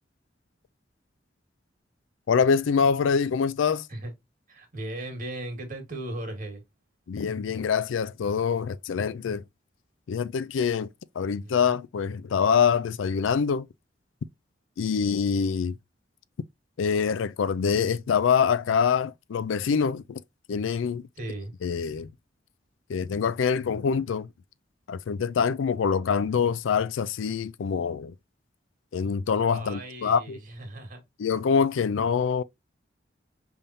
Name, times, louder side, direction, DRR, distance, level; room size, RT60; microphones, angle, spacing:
voice 1, 2.3-3.9 7.1-9.4 10.1-10.9 11.2-13.7 14.8-15.8 16.8-20.2 20.5-21.1 21.6-22.1 22.9-24.3 24.9-28.1 28.9-30.4 31.2-32.4, left 6 dB, 90° left, 0.4 m, -25 dB
voice 2, 4.5-6.6 11.2-11.8 21.2-21.5 29.4-31.0, right 1 dB, 45° right, 1.8 m, -37 dB
5.4 x 3.5 x 2.7 m
head